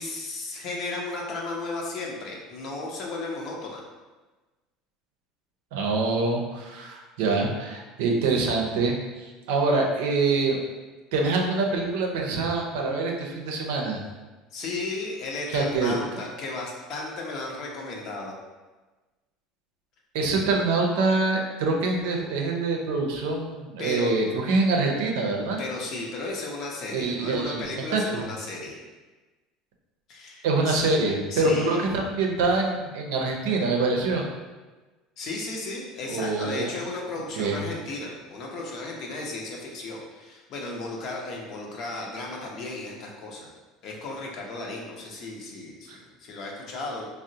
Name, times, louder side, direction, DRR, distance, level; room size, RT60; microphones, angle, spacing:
voice 1, 0.0-3.8 14.5-18.3 23.8-24.1 25.6-28.8 30.1-30.8 31.3-31.8 35.2-43.5 43.8-47.0, left 2 dB, 55° left, -1 dB, 0.7 m, -34 dB
voice 2, 5.7-10.6 11.1-14.0 15.5-15.9 20.1-25.6 26.9-27.6 27.9-28.2 30.4-34.2 36.1-36.7 37.4-37.6 45.9-46.0, right 3 dB, 85° right, 1 dB, 0.5 m, -25 dB
3.6 x 2.0 x 2.7 m, 1.2 s
supercardioid pair, 100°, 0 cm